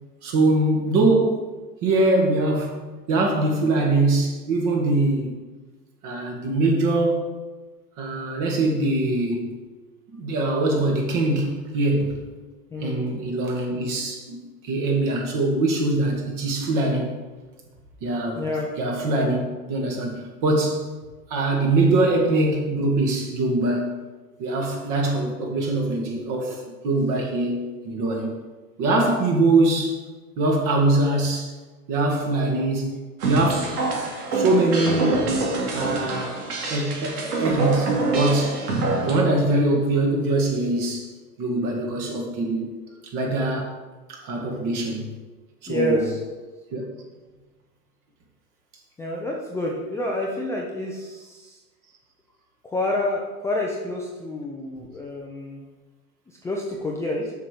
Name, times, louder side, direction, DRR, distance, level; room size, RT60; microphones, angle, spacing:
voice 1, 0.2-1.4 1.8-5.3 6.0-7.3 8.0-9.5 10.1-12.2 12.8-14.4 14.6-17.2 18.0-18.4 18.8-20.9 21.3-24.0 24.4-28.4 28.8-30.0 30.4-31.5 31.9-32.9 33.2-33.7 34.3-35.3 35.7-36.3 36.7-38.6 39.0-41.1 41.4-42.8 43.1-43.7 44.1-45.1 45.6-46.1 46.7-46.9, right 2 dB, 40° right, 1 dB, 2.1 m, -23 dB
voice 2, 12.7-13.0 18.4-18.7 45.7-46.2 49.0-51.6 52.6-55.6 56.3-57.3, left 2 dB, 5° left, -2 dB, 0.5 m, -28 dB
sound 1, 33.2-39.2, right 2 dB, 70° right, 2.8 m, -25 dB
7.2 x 6.0 x 5.2 m, 1.3 s
hypercardioid pair, 120°, 48 cm